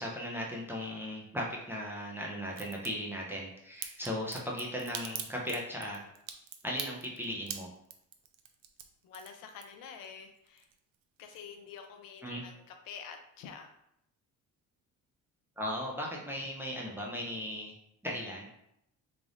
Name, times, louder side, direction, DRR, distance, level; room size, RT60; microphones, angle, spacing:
voice 1, 0.0-6.0 6.6-7.7 12.2-12.4 15.6-17.7 18.0-18.5, equal, 5° right, -3 dB, 0.3 m, -37 dB
Crack, 2.5-2.9 3.8-10.1 10.4-11.0 11.3-11.4, right 9 dB, 80° right, 0.5 m, -42 dB
voice 2, 9.0-10.7 11.2-13.7, left 6 dB, 75° left, 4 dB, 0.5 m, -48 dB
3.3 x 2.4 x 3.7 m, 0.78 s
cardioid pair, 170°, 34 cm